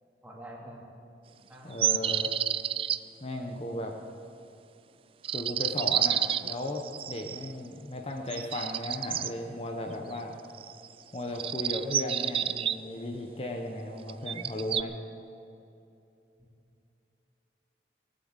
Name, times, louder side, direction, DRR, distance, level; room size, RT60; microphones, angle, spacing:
voice 1, 0.2-0.9 1.5-2.0 16.4-16.5, right 1 dB, 10° right, -2 dB, 2.4 m, -47 dB
voice 2, 1.6-2.3 3.2-4.0 5.3-10.4 11.1-14.9, left 1 dB, 35° left, 2 dB, 1.0 m, -36 dB
sound 1, 1.8-3.0 5.2-7.5 8.3-9.3 10.5-10.9 11.4-12.8 14.1-14.8, right 10 dB, 30° right, 0.3 m, -29 dB
19.0 x 7.9 x 8.0 m, 2.7 s
head